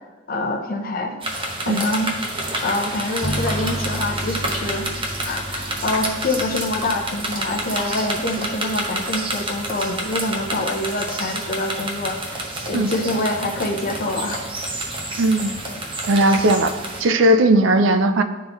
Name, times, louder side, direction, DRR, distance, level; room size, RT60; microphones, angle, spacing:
voice 1, 0.3-1.1 1.6-2.1 2.6-4.9 5.2-14.4, left 2 dB, 50° left, 3 dB, 0.7 m, -25 dB
sound 1, 1.2-17.0, right 1 dB, 25° right, 0.9 m, -29 dB
sound 2, 3.2-12.5, equal, 10° left, 0.4 m, -35 dB
voice 2, 15.2-15.5 16.1-18.2, right 1 dB, 70° right, 10 dB, 0.5 m, -17 dB
11.0 x 3.7 x 3.0 m, 1.2 s
head